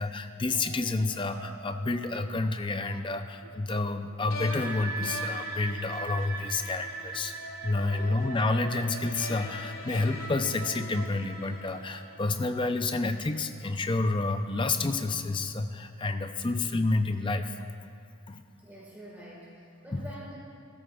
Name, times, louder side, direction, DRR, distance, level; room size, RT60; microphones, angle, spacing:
voice 1, 0.0-7.4 7.6-17.6 18.3-18.4 19.9-20.0, left 3 dB, 20° left, 7 dB, 0.5 m, -29 dB
sound 1, 0.5-15.2, right 4 dB, 75° right, 0.7 m, -43 dB
sound 2, 4.3-12.5, left 3 dB, 70° left, 1.5 m, -43 dB
voice 2, 7.8-8.2 18.6-20.4, right 1 dB, 10° right, -6 dB, 1.6 m, -46 dB
16.5 x 13.5 x 2.4 m, 2.4 s
head